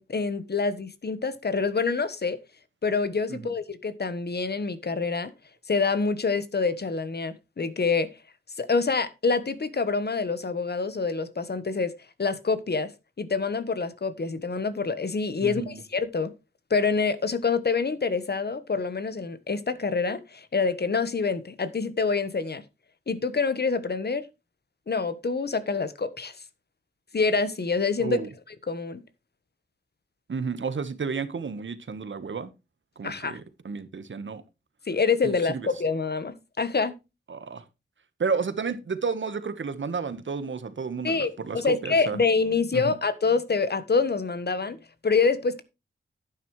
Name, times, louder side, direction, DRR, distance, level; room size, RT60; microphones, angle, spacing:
voice 1, 0.0-2.4 2.8-5.3 5.7-8.1 8.6-11.9 12.2-12.9 13.2-16.3 16.7-22.6 23.1-24.2 24.9-26.4 27.1-28.2 28.5-29.0 33.0-33.4 34.9-36.9 41.0-44.8 45.0-45.6, left 4 dB, 55° left, 1.3 m, -26 dB
voice 2, 15.4-15.8 28.0-28.3 30.3-32.5 33.0-34.4 35.2-35.6 37.3-37.6 38.2-42.2 42.7-42.9, right 5 dB, 70° right, 1.4 m, -31 dB
11.0 x 9.6 x 3.2 m
wide cardioid pair, 65°, 20 cm